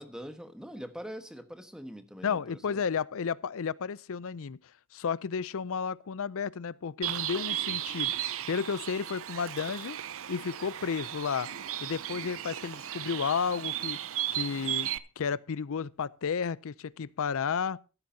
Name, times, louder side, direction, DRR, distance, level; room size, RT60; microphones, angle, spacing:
voice 1, 0.0-2.4 2.7-2.8, equal, 5° right, 1.3 m, -43 dB
voice 2, 2.2-4.6 4.9-10.0 10.3-11.5 11.8-14.0 14.3-17.8, left 6 dB, 65° left, 0.5 m, -32 dB
Bird, 7.0-15.0, right 12 dB, 65° right, 0.7 m, -35 dB
14.5 x 12.5 x 2.8 m
head